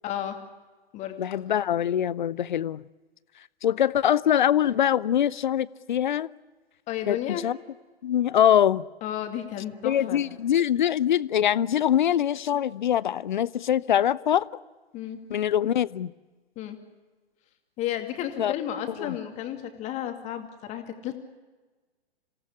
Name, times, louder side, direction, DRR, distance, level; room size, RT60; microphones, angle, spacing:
voice 1, 0.0-0.4 0.9-1.2 6.9-7.4 9.0-10.2 14.9-15.2 16.6-16.8 17.8-21.1, left 11 dB, 20° left, 2.5 m, -32 dB
voice 2, 1.2-2.8 3.6-6.3 7.1-7.6 8.0-8.8 9.8-14.5 15.3-16.1 18.4-18.5 19.0-19.2, left 10 dB, 50° left, 0.7 m, -23 dB
27.0 x 18.0 x 9.9 m
figure-of-eight pair, 120°, 31 cm